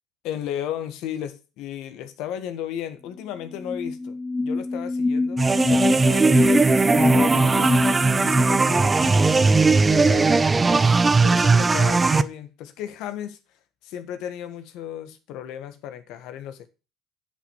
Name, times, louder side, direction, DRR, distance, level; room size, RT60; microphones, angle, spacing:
voice 1, 0.2-7.7 8.1-9.1 9.9-13.4 13.8-16.7, left 10 dB, 75° left, 1.6 m, -35 dB
sound 1, 3.2-3.3 3.5-9.3, left 3 dB, 15° left, 0.8 m, -25 dB
sound 2, 5.4-12.2, right 4 dB, 25° right, 0.8 m, -18 dB
9.8 x 5.7 x 7.2 m
supercardioid pair, 90°, 0 cm